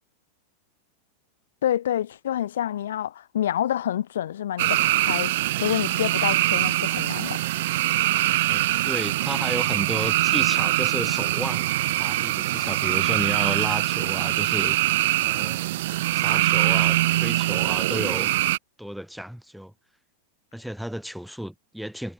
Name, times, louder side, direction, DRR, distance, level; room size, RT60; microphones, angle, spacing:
voice 1, 1.6-5.3 5.6-7.4, left 11 dB, 60° left, 4.5 m, -27 dB
sound 1, 4.6-18.6, right 16 dB, 55° right, 0.5 m, -23 dB
voice 2, 8.4-11.7 12.0-14.8 15.2-15.6 16.1-18.4 18.8-19.7 20.5-22.1, equal, ahead, 3.1 m, -33 dB
figure-of-eight pair, 90°, 0 cm